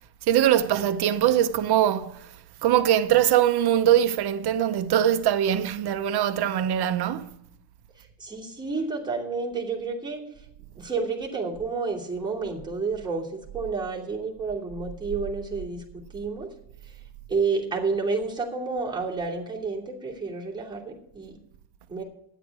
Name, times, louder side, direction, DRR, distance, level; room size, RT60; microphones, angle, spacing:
voice 1, 0.3-2.3 2.6-7.4, right 11 dB, 60° right, 0.9 m, -22 dB
voice 2, 8.0-10.2 10.8-16.5 16.8-16.9 17.3-21.4 21.9-22.0, right 4 dB, 10° right, 2.8 m, -30 dB
12.5 x 10.0 x 4.7 m
cardioid pair, 155°, 43 cm